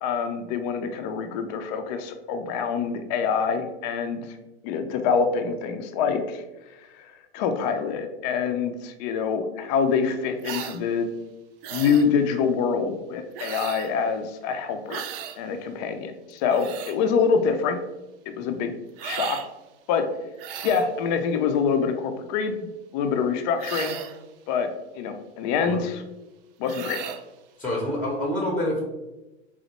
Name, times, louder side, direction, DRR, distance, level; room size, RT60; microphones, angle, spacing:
voice 1, 0.0-4.3 4.6-6.4 6.9-11.1 11.7-15.1 15.4-17.8 18.3-18.7 19.0-19.4 19.9-20.1 20.6-22.7 22.9-24.0 24.5-24.7 24.9-26.0 26.6-27.0, left 6 dB, 40° left, 7 dB, 0.4 m, -25 dB
sound 1, 10.4-10.8 11.6-12.1 13.4-13.9 14.9-15.4 16.3-17.0 19.0-19.5 20.4-20.9 23.6-24.2 26.6-27.2, right 8 dB, 55° right, 0.5 m, -35 dB
voice 2, 27.6-28.8, left 1 dB, 5° left, -2 dB, 0.7 m, -27 dB
4.3 x 2.0 x 2.8 m, 1.0 s
hypercardioid pair, 110°, 34 cm